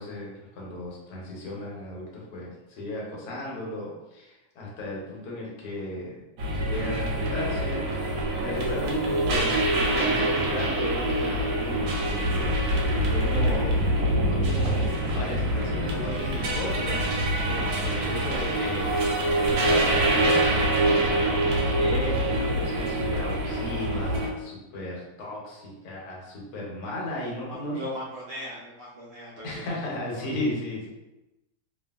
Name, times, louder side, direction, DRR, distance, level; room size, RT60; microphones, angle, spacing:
voice 1, 0.0-6.2 6.5-7.8 8.4-13.9 14.3-17.2 17.5-19.0 19.2-21.4 21.7-27.8 29.4-30.9, left 1 dB, 70° left, -4 dB, 1.3 m, -35 dB
sound 1, 6.4-24.3, right 1 dB, 90° right, 1.2 m, -25 dB
voice 2, 27.5-30.3, left 1 dB, 65° right, -7 dB, 1.0 m, -39 dB
2.8 x 2.5 x 2.3 m, 0.99 s
omnidirectional pair, 1.8 m